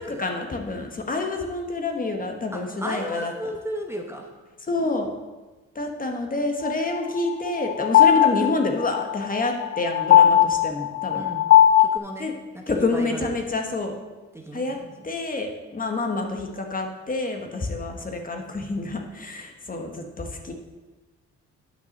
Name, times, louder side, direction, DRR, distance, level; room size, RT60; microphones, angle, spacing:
voice 1, 0.0-3.3 4.7-5.1 5.7-11.3 12.2-12.3 12.7-13.9 14.5-14.8 15.0-20.5, left 3 dB, 30° left, 3 dB, 1.2 m, -28 dB
voice 2, 2.5-4.3 11.1-11.5 11.8-13.4 14.3-14.8, right 1 dB, 10° right, 1 dB, 0.9 m, -34 dB
sound 1, 6.6-12.0, left 11 dB, 50° left, 0.4 m, -18 dB
8.7 x 5.9 x 5.3 m, 1.2 s
cardioid pair, 90°, 30 cm